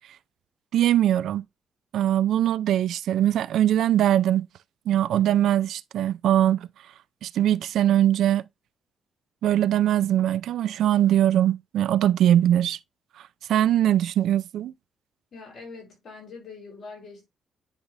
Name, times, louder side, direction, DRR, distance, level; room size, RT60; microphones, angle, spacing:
voice 1, 0.7-1.4 1.9-4.5 4.9-6.7 7.2-8.4 9.4-12.8 13.5-14.7, right 11 dB, 70° right, 0.4 m, -21 dB
voice 2, 15.3-17.3, left 4 dB, 45° left, 5.2 m, -43 dB
10.0 x 3.5 x 3.3 m
cardioid pair, 155°, 0 cm